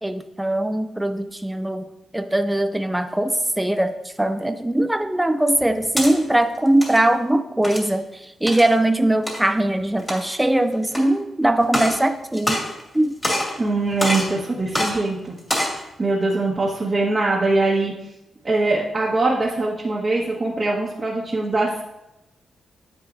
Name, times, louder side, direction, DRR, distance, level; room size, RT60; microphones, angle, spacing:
voice 1, 0.0-12.6 12.9-13.2, right 1 dB, 5° right, 9 dB, 0.5 m, -21 dB
sound 1, 5.6-6.1 6.7-7.0 7.6-7.9 8.5-8.7 9.3-9.4 10.0-10.4 10.9-11.0 11.6-12.0 12.3-13.0 13.2-13.6 14.0-14.3 14.7-14.9 15.4-15.8, left 1 dB, 15° left, 2.4 m, -24 dB
voice 2, 13.6-15.4 15.7-17.9 18.4-21.8, right 2 dB, 30° right, -6 dB, 1.5 m, -22 dB
10.0 x 7.7 x 2.7 m, 0.95 s
cardioid pair, 120°, 0 cm